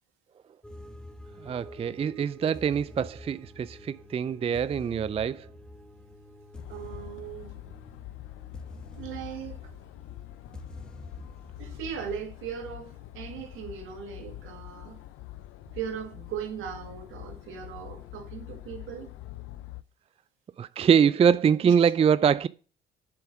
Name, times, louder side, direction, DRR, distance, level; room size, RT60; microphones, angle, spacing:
sound 1, 0.6-12.2, left 1 dB, 5° left, 1.3 m, -47 dB
voice 1, 1.4-5.5 20.6-22.5, right 7 dB, 30° right, 0.4 m, -24 dB
sound 2, 6.5-19.8, left 15 dB, 75° left, 0.5 m, -45 dB
voice 2, 6.7-7.6 9.0-9.6 11.6-15.0 15.7-19.1 21.6-21.7, right 8 dB, 75° right, 1.9 m, -38 dB
7.8 x 6.9 x 6.0 m
hypercardioid pair, 55°, 21 cm